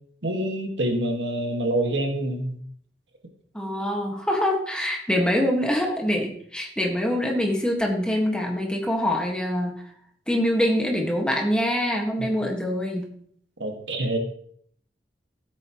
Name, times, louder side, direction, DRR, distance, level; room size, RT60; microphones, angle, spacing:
voice 1, 0.2-2.5 12.2-12.3 13.6-14.2, right 1 dB, 80° right, 3 dB, 1.8 m, -26 dB
voice 2, 3.5-9.7 10.3-13.0, equal, 5° left, 0 dB, 1.6 m, -24 dB
15.0 x 8.4 x 3.0 m, 0.62 s
head